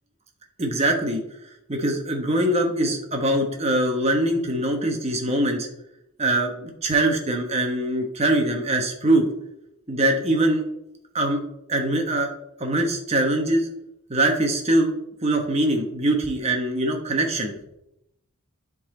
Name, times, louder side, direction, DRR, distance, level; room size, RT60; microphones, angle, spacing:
voice 1, 0.6-1.2 1.7-5.7 6.2-9.3 9.9-10.6 11.1-11.4 11.7-12.3 12.6-13.7 14.1-14.9 15.2-17.5, right 1 dB, 30° right, 3 dB, 1.1 m, -22 dB
11.0 x 4.0 x 3.8 m, 0.84 s
head